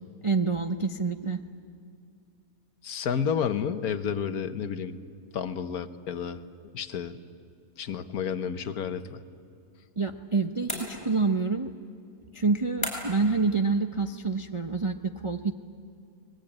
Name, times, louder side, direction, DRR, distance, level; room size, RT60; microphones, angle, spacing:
voice 1, 0.2-1.4 10.0-11.7 12.3-15.5, right 4 dB, 35° right, 5 dB, 0.5 m, -27 dB
voice 2, 2.8-5.0 5.3-6.4 6.7-7.1 7.8-9.2, left 7 dB, 70° left, 10 dB, 1.4 m, -30 dB
sound 1, 10.7-11.4 12.8-13.3, equal, 5° left, 6.1 m, -35 dB
29.5 x 20.5 x 8.8 m, 2.4 s
omnidirectional pair, 1.7 m